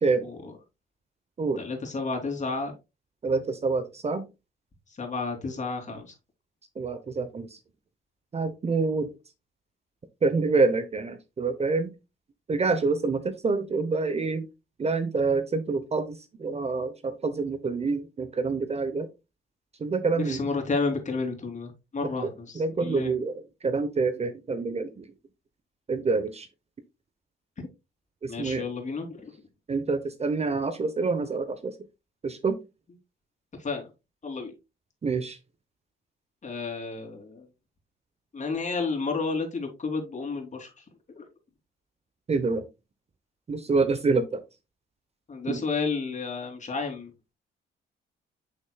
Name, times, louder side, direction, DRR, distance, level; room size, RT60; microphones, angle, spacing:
voice 1, 1.6-2.7 5.0-6.1 20.2-23.1 27.6-27.7 28.3-29.3 33.6-33.9 34.2-34.5 36.4-37.5 38.3-40.8 41.1-41.3 45.3-47.1, left 4 dB, 35° left, 3.1 m, -31 dB
voice 2, 3.2-4.2 6.8-7.5 8.3-9.1 10.2-11.9 12.5-14.5 14.8-19.1 19.8-20.4 22.2-23.3 23.6-25.1 25.9-26.5 28.2-28.7 29.7-31.7 32.2-32.6 35.0-35.4 42.3-42.7 43.5-44.4 45.5-45.6, right 4 dB, 30° right, 0.9 m, -27 dB
8.2 x 6.6 x 2.3 m
cardioid pair, 90°, 20 cm